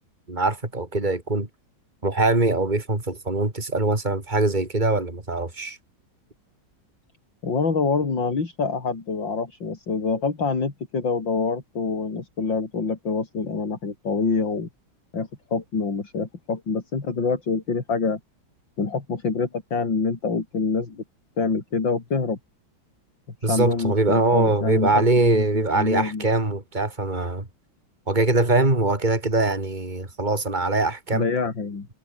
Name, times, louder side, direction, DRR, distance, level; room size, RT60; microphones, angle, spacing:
voice 1, 0.3-1.5 2.0-5.8 23.4-27.5 28.1-31.3, right 2 dB, 20° right, 4.3 m, -22 dB
voice 2, 7.4-14.7 15.1-18.2 18.8-21.0 21.4-22.4 23.4-26.3 31.1-31.9, left 4 dB, 65° left, 4.2 m, -26 dB
omnidirectional pair, 2.2 m